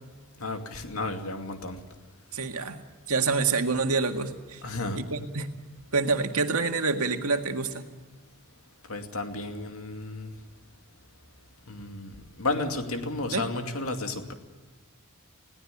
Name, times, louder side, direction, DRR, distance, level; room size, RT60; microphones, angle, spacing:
voice 1, 0.4-1.8 4.6-5.0 8.9-10.3 11.7-14.3, left 2 dB, 70° left, 5 dB, 2.5 m, -32 dB
voice 2, 2.3-2.8 3.1-4.6 5.0-5.5 5.9-7.8 13.3-13.4, right 4 dB, 80° right, 5 dB, 2.0 m, -27 dB
21.0 x 17.5 x 8.5 m, 1.3 s
head